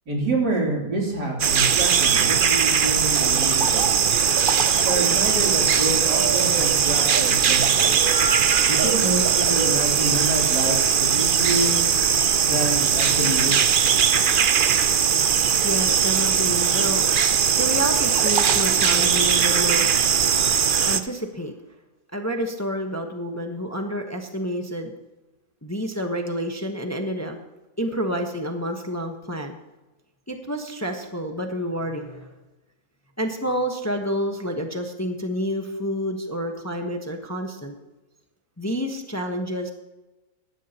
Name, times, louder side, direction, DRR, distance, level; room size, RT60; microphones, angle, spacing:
voice 1, 0.1-3.9 4.8-7.9 8.7-11.8 12.4-13.8, right 2 dB, 85° right, -2 dB, 4.0 m, -27 dB
sound 1, 1.4-21.0, right 7 dB, 55° right, 0.5 m, -20 dB
voice 2, 15.6-17.1 17.6-20.0 20.9-21.5 22.1-24.9 25.6-27.4 27.8-29.6 30.3-32.3 33.2-37.8 38.6-39.7, equal, 10° left, 4 dB, 1.0 m, -29 dB
16.5 x 12.0 x 3.0 m, 1.1 s
omnidirectional pair, 1.7 m